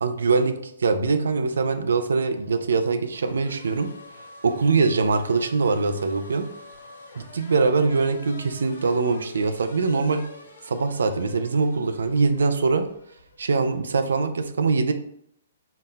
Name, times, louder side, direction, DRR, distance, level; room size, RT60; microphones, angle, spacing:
voice 1, 0.0-3.9 4.4-6.5 7.2-10.3 10.6-12.9 13.4-14.9, right 4 dB, 85° right, 8 dB, 0.4 m, -23 dB
sound 1, 1.8-14.0, left 2 dB, 85° left, 1.2 m, -46 dB
3.9 x 2.1 x 3.9 m, 0.71 s
hypercardioid pair, 150°, 0 cm